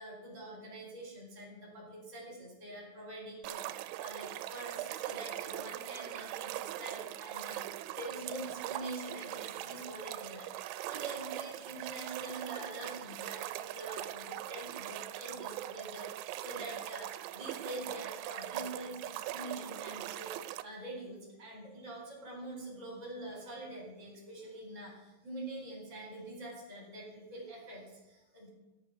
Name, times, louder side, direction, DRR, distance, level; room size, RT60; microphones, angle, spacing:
voice 1, 0.0-20.3 20.6-28.5, right 1 dB, 15° right, -3 dB, 4.4 m, -45 dB
sound 1, 3.4-20.6, right 14 dB, 90° right, 3.0 m, -41 dB
16.0 x 10.5 x 5.9 m, 0.98 s
omnidirectional pair, 5.2 m